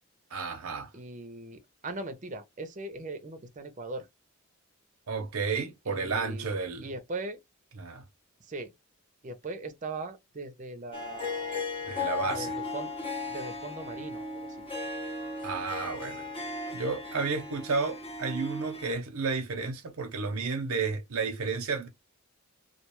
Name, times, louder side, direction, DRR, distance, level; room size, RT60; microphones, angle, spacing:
voice 1, 0.3-0.9 5.1-6.9 7.8-8.0 11.8-12.5 15.4-16.2 16.7-21.9, right 4 dB, 85° right, 0.7 m, -32 dB
voice 2, 0.9-4.1 5.9-6.5 6.8-7.4 8.4-8.7 9.2-11.6 12.2-12.9 13.3-14.6 16.2-16.3, right 2 dB, 35° right, 0.6 m, -40 dB
Harp, 10.9-18.9, left 3 dB, 25° left, 0.6 m, -36 dB
2.4 x 2.3 x 2.9 m
head